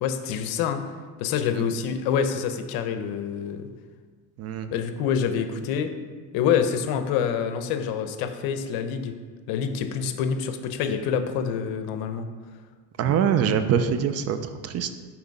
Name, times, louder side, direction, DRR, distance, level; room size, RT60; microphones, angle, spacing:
voice 1, 0.0-0.8 1.2-3.7 4.7-5.9 6.3-9.1 9.5-12.3, left 7 dB, 70° left, 8 dB, 0.8 m, -26 dB
voice 2, 13.0-14.4 14.6-14.9, right 8 dB, 40° right, 10 dB, 0.5 m, -23 dB
5.9 x 4.7 x 5.3 m, 1.5 s
cardioid pair, 125°, 37 cm